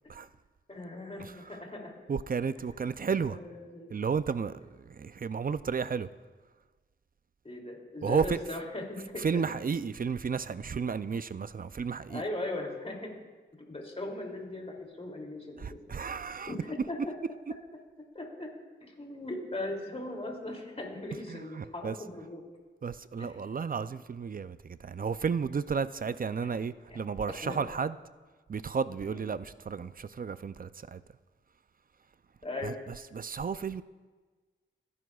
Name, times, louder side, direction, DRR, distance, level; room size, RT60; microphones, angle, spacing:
voice 1, 0.7-2.0 3.3-3.9 7.4-9.4 12.1-13.1 13.6-15.6 16.5-17.1 18.1-18.5 18.8-22.4 23.2-23.4 26.4-26.5 26.9-27.0 27.4-27.6 29.0-29.2 32.4-32.8, left 2 dB, 30° left, 2.7 m, -39 dB
voice 2, 1.2-1.6 2.1-3.4 3.9-4.6 4.9-6.1 8.0-8.4 9.2-12.2 15.6-16.5 21.3-22.0 22.8-28.0 28.5-31.0 32.6-33.8, right 6 dB, 45° right, 0.4 m, -33 dB
27.5 x 11.0 x 2.4 m
wide cardioid pair, 70°, 21 cm